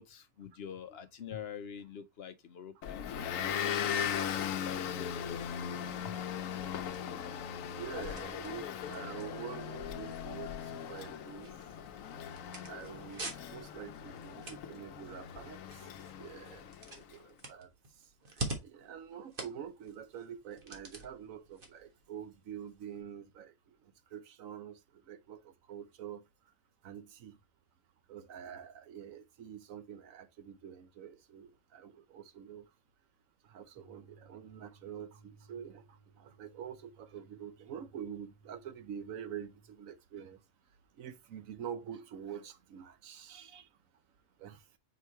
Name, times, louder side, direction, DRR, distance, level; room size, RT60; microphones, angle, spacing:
voice 1, 0.0-5.6 6.0-6.2, left 8 dB, 60° left, 0.7 m, -46 dB
Motor vehicle (road) / Engine, 2.8-17.0, left 8 dB, 80° left, 1.0 m, -39 dB
sound 1, 6.0-23.0, right 2 dB, 45° right, 1.6 m, -48 dB
voice 2, 7.8-11.5 12.6-15.6 16.2-16.7 16.9-17.7 18.6-23.5 24.1-26.2 26.8-27.4 28.1-32.6 33.4-40.4 41.0-43.7 44.4-44.6, right 8 dB, 85° right, 1.2 m, -46 dB
sound 2, 33.7-39.7, right 4 dB, 20° right, 0.9 m, -62 dB
4.7 x 4.6 x 4.3 m
omnidirectional pair, 1.4 m